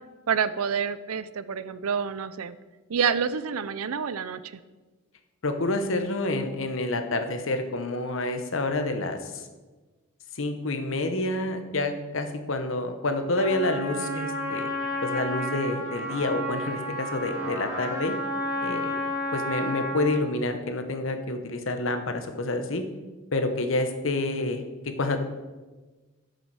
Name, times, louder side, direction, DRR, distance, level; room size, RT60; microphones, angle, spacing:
voice 1, 0.3-2.6 2.9-4.4, right 6 dB, 85° right, 14 dB, 0.5 m, -28 dB
voice 2, 5.4-9.5 10.3-14.7 15.0-18.1 18.6-19.0 19.3-22.8 23.3-24.6 25.0-25.2, left 2 dB, 65° left, 7 dB, 1.0 m, -28 dB
Trumpet, 13.3-20.3, equal, 10° right, 2.7 m, -31 dB
12.0 x 6.8 x 4.7 m, 1.3 s
head